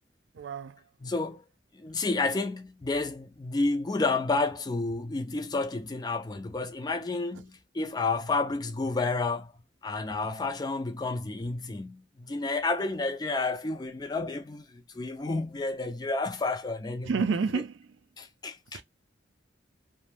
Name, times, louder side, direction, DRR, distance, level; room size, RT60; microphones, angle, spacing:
voice 1, 0.4-0.7 17.1-17.7 18.7-18.8, right 5 dB, 85° right, 0.4 m, -28 dB
voice 2, 1.0-1.4 1.7-9.5 9.8-17.2 17.5-17.6 18.2-18.8, left 3 dB, 20° left, 0.4 m, -30 dB
2.5 x 2.1 x 3.2 m
head